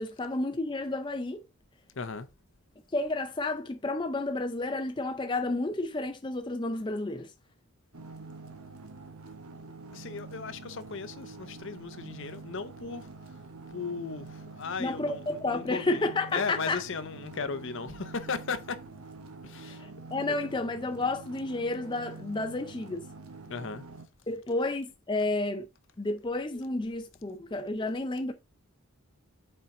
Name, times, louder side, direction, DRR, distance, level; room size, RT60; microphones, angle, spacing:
voice 1, 0.0-1.4 2.9-7.3 14.8-16.8 19.6-19.8 20.1-23.1 24.3-25.7 26.0-28.3, left 2 dB, 20° left, 0.5 m, -31 dB
voice 2, 2.0-2.3 9.9-13.1 13.7-16.0 16.3-18.8 19.4-19.8 20.3-20.4 23.5-23.8, left 4 dB, 55° left, 0.7 m, -36 dB
sound 1, 7.9-24.1, right 3 dB, 80° right, 1.2 m, -46 dB
6.9 x 4.5 x 3.7 m
head